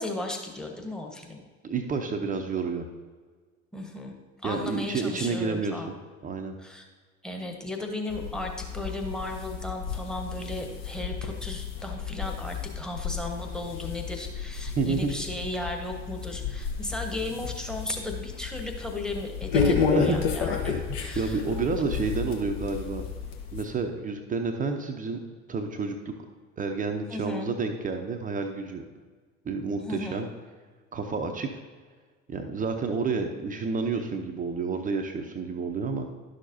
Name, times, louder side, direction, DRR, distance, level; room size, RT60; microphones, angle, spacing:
voice 1, 0.0-1.4 3.7-4.1 4.4-5.9 6.6-6.9 7.2-21.4 27.1-27.5 29.8-30.3, left 2 dB, ahead, 2 dB, 1.2 m, -35 dB
voice 2, 1.6-2.9 4.4-5.9 6.2-6.6 14.8-15.2 19.9-20.2 20.5-23.0 23.5-25.2 25.5-26.1 26.6-28.8 29.4-30.3 30.9-31.5 32.3-36.1, right 4 dB, 25° right, 5 dB, 0.7 m, -30 dB
sound 1, 8.1-23.6, left 6 dB, 55° left, 1.2 m, -32 dB
11.5 x 6.4 x 2.7 m, 1.5 s
figure-of-eight pair, 65°, 36 cm